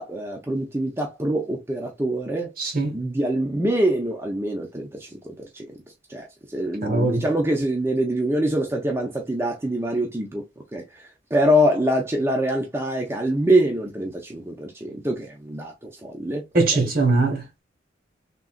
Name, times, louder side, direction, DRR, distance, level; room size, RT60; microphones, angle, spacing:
voice 1, 0.0-2.5 2.9-5.7 6.1-6.3 6.5-10.4 10.7-16.4 16.7-16.9, right 1 dB, 15° right, 0.5 m, -24 dB
voice 2, 2.6-2.9 6.8-7.2 16.5-17.6, right 3 dB, 50° right, 0.9 m, -21 dB
3.7 x 2.3 x 2.4 m
head